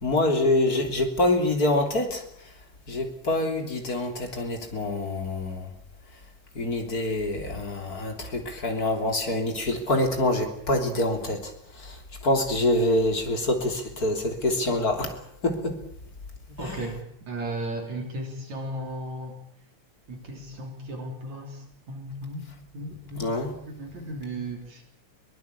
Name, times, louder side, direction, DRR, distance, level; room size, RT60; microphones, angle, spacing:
voice 1, 0.0-2.2 2.9-5.7 6.6-11.5 11.8-12.0 12.2-15.8 16.6-16.8 23.2-23.5, left 1 dB, 25° left, 4 dB, 3.6 m, -26 dB
voice 2, 16.6-17.0 17.3-19.4 20.1-22.4 22.7-23.2 23.7-24.8, right 1 dB, 60° right, 3 dB, 4.7 m, -35 dB
23.0 x 19.0 x 8.3 m, 0.68 s
omnidirectional pair, 3.7 m